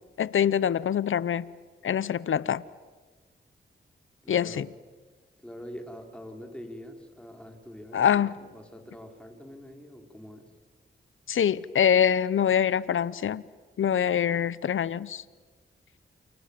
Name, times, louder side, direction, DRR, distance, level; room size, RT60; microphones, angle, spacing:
voice 1, 0.2-1.5 1.8-2.6 4.3-4.6 7.9-8.3 11.3-13.4 13.8-15.2, left 9 dB, 75° left, 0.8 m, -24 dB
voice 2, 4.2-4.7 5.4-10.4, equal, 5° left, 5.6 m, -44 dB
29.0 x 25.5 x 7.7 m
cardioid pair, 45°, 21 cm